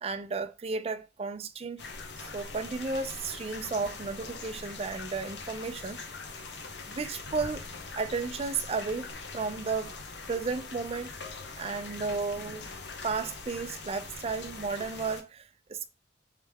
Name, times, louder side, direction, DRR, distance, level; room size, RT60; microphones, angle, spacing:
voice 1, 0.0-1.8 2.3-6.0 6.9-7.6 8.0-9.1 9.3-9.9 10.3-11.1 11.6-12.7 13.0-15.4 15.7-15.9, right 4 dB, 35° right, 0.4 m, -33 dB
sound 1, 1.8-15.2, left 4 dB, 75° left, 0.8 m, -42 dB
3.4 x 3.2 x 3.4 m
head